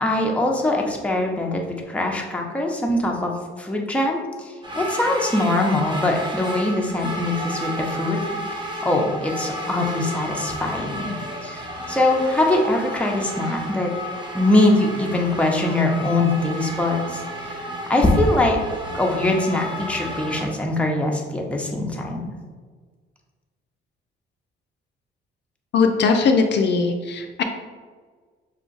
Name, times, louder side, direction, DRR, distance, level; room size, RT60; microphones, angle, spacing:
voice 1, 0.0-3.3 3.6-13.9 14.3-17.2 17.9-18.6 18.9-22.2, left 1 dB, 5° left, 0 dB, 0.8 m, -22 dB
sound 1, 4.6-20.5, equal, 25° right, 0.9 m, -32 dB
voice 2, 25.7-27.4, left 4 dB, 60° left, 4 dB, 0.5 m, -19 dB
5.5 x 2.4 x 3.9 m, 1.5 s
cardioid pair, 90°, 20 cm